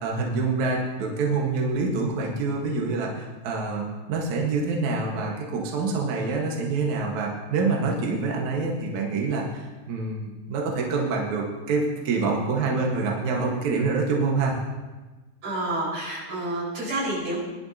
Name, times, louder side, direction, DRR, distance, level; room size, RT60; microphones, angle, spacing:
voice 1, 0.0-14.5, right 3 dB, 75° right, -1 dB, 1.7 m, -26 dB
voice 2, 15.4-17.4, right 1 dB, 40° right, -6 dB, 6.3 m, -29 dB
21.0 x 11.5 x 2.9 m, 1.2 s
omnidirectional pair, 5.8 m